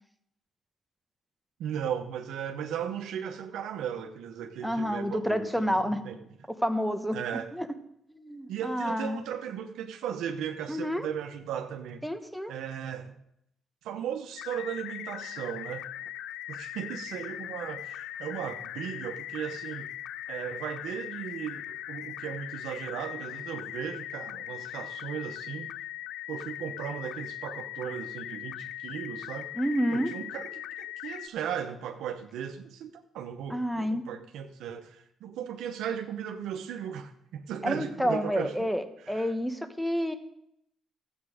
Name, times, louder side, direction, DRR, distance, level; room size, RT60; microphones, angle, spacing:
voice 1, 1.6-6.2 7.1-7.5 8.5-12.1 12.5-13.2 13.8-15.9 16.5-19.9 20.3-25.7 26.3-29.5 29.9-38.7 39.1-39.3, right 8 dB, 85° right, 5 dB, 0.9 m, -36 dB
voice 2, 4.6-6.0 6.5-7.2 7.5-7.7 8.1-9.2 10.7-11.1 12.0-12.5 29.5-30.1 33.5-34.0 37.6-40.1, equal, ahead, 10 dB, 1.1 m, -29 dB
sound 1, 14.4-31.3, left 13 dB, 90° left, 0.3 m, -40 dB
13.0 x 8.2 x 4.9 m, 0.77 s
cardioid pair, 90°, 0 cm